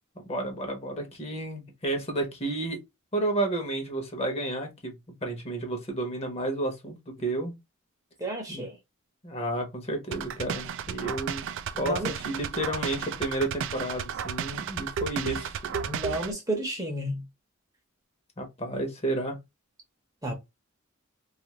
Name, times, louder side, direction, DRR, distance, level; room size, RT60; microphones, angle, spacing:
voice 1, 0.3-2.8 3.1-4.9 5.2-7.5 8.5-8.6 9.2-11.4 11.8-15.8 18.4-19.4, right 2 dB, 30° left, 0.9 m, -31 dB
voice 2, 8.2-8.8 11.7-12.2 15.9-17.2 20.2-20.3, right 1 dB, 15° right, 0.8 m, -31 dB
sound 1, 10.1-16.3, right 7 dB, 60° right, 0.3 m, -33 dB
2.5 x 2.4 x 2.9 m
head